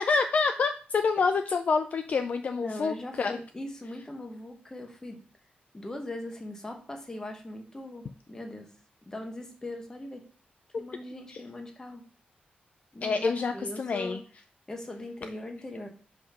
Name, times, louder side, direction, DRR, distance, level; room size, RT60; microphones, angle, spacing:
voice 1, 0.0-3.4 10.7-10.8 11.3-11.4 13.0-14.2, left 4 dB, 45° left, 7 dB, 0.3 m, -27 dB
voice 2, 2.4-5.2 5.7-8.7 9.1-10.3 10.8-12.0 12.9-14.2 14.7-15.9, left 1 dB, 15° left, 4 dB, 1.0 m, -40 dB
5.3 x 3.7 x 5.6 m, 0.41 s
wide cardioid pair, 170°, 3 cm